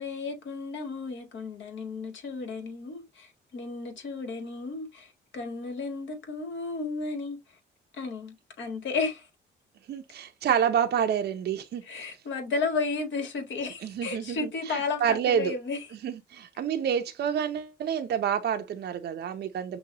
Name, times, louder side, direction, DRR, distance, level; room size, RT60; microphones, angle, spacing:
voice 1, 0.0-7.6 7.9-9.3 11.8-15.9, left 4 dB, 70° left, 1.8 m, -33 dB
voice 2, 9.9-11.8 13.8-15.5 16.0-19.8, right 8 dB, 55° right, 0.6 m, -28 dB
6.0 x 2.3 x 2.8 m
cardioid pair, 90°, 20 cm